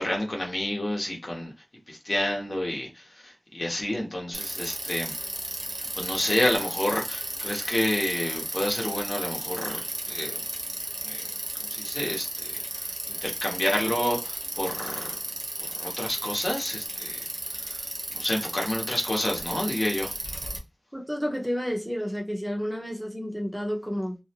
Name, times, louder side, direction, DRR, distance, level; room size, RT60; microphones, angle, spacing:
voice 1, 0.0-1.5 1.9-5.1 5.9-10.4 11.0-11.2 11.6-12.5 12.8-15.2 15.8-17.2 17.6-20.1, left 1 dB, 55° left, 0.9 m, -29 dB
Bicycle, 4.3-20.6, right 1 dB, 50° right, 0.8 m, -34 dB
voice 2, 20.9-24.2, equal, 5° right, 0.7 m, -30 dB
2.5 x 2.0 x 2.8 m
wide cardioid pair, 65°, 0 cm